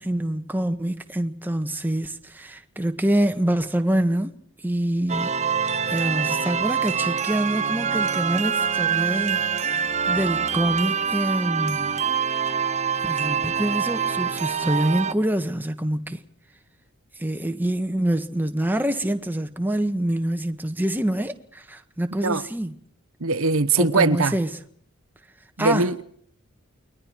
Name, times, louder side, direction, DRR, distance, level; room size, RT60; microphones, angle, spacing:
voice 1, 0.0-4.3 4.6-12.0 13.0-16.2 17.2-22.8 23.8-24.5 25.6-25.9, right 1 dB, 10° right, 1.6 m, -26 dB
sound 1, 5.1-15.1, right 6 dB, 35° right, 1.0 m, -25 dB
voice 2, 23.2-24.4 25.6-26.0, right 3 dB, 75° right, 1.2 m, -21 dB
29.5 x 22.0 x 4.7 m
head